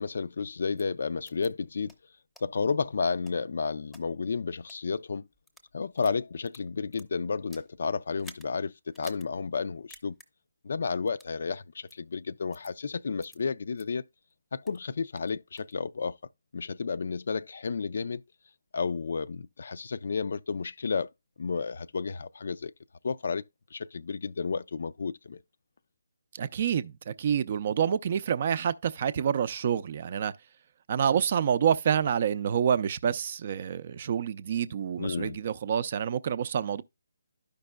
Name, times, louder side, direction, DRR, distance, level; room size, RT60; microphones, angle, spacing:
voice 1, 0.0-1.9 2.4-5.3 5.7-10.2 10.6-14.0 14.5-16.2 16.5-18.2 18.7-21.1 21.4-22.7 23.0-23.4 23.7-25.4 35.0-35.4, left 5 dB, 60° left, 0.3 m, -32 dB
sound 1, 0.8-0.9 1.3-1.5 1.9-2.0 2.4-2.5 3.0-4.0 4.6-4.8 5.3-5.7 6.0-7.7 8.2-8.5 8.9-9.3 9.6-9.7 9.9-10.3 11.1-11.3 11.9-12.0 12.5-12.7 13.2-13.4 13.8-13.9 14.3-14.8 15.2-15.7, left 1 dB, 5° left, 0.7 m, -52 dB
voice 2, 26.3-30.3 30.9-36.8, right 8 dB, 45° right, 0.4 m, -27 dB
12.5 x 5.2 x 2.2 m
figure-of-eight pair, 155°, 0 cm